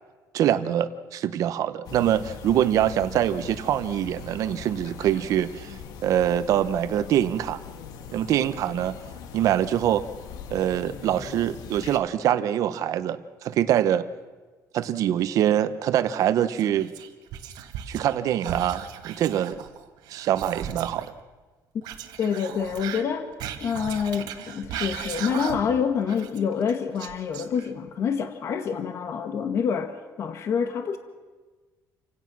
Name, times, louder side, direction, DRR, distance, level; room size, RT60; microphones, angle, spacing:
voice 1, 0.3-7.6 8.1-9.0 9.3-10.0 10.5-14.1 14.7-16.9 17.9-19.6 20.1-21.1, right 11 dB, 55° right, 1.0 m, -24 dB
sound 1, 1.8-12.0, left 7 dB, 75° left, 1.5 m, -41 dB
Whispering, 16.5-18.1 18.4-21.1 21.8-25.8 26.1-27.9, right 9 dB, 85° right, 1.7 m, -37 dB
voice 2, 22.2-23.3 23.6-31.0, left 7 dB, 45° left, 1.3 m, -27 dB
28.5 x 17.0 x 6.1 m
cardioid pair, 175°, 7 cm